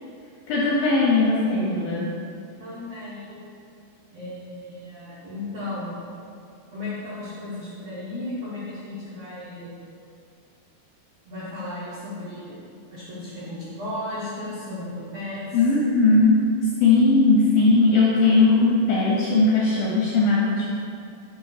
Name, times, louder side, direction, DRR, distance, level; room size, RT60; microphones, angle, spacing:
voice 1, 0.5-2.1 15.5-16.5 16.8-20.7, left 3 dB, 80° left, -5 dB, 2.1 m, -19 dB
voice 2, 2.6-3.5 4.1-6.0 6.7-9.7 11.2-12.6 12.9-15.4, left 2 dB, 85° right, -10 dB, 1.4 m, -35 dB
6.2 x 3.0 x 5.6 m, 2.5 s
omnidirectional pair, 4.8 m